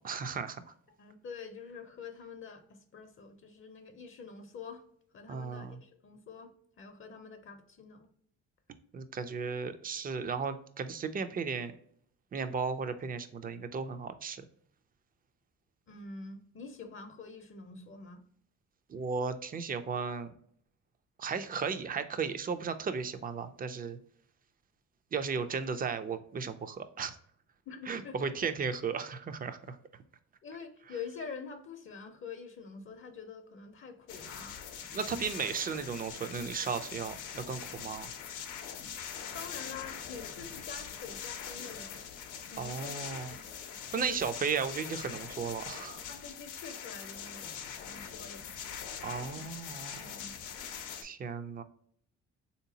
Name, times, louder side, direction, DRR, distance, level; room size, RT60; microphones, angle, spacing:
voice 1, 0.0-0.6 5.3-5.8 8.9-11.7 12.3-14.4 18.9-20.3 21.2-24.0 25.1-27.2 27.9-29.8 34.9-38.1 42.6-43.3 43.9-46.0 49.0-50.0 51.0-51.6, right 5 dB, 30° right, 10 dB, 0.4 m, -35 dB
voice 2, 1.0-4.8 5.1-8.1 15.9-18.2 27.7-28.5 30.4-34.6 39.1-42.0 42.5-43.0 43.3-43.4 43.9-44.3 46.1-48.5 50.0-50.5, left 5 dB, 45° left, 6 dB, 0.6 m, -46 dB
sound 1, 34.1-51.0, left 7 dB, 85° left, 0.6 m, -43 dB
3.6 x 2.8 x 2.7 m, 0.63 s
cardioid pair, 90°, 30 cm